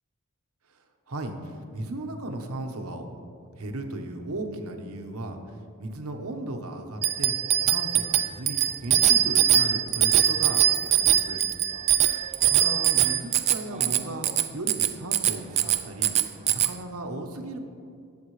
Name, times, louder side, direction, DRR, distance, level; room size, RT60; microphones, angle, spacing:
voice 1, 0.7-3.1 3.5-7.3 7.6-11.4 12.5-16.2 16.5-17.6, right 1 dB, 70° right, 4 dB, 1.0 m, -36 dB
Bicycle bell, 7.0-16.7, right 10 dB, 30° right, 0.4 m, -22 dB
19.0 x 7.4 x 3.2 m, 2.4 s
head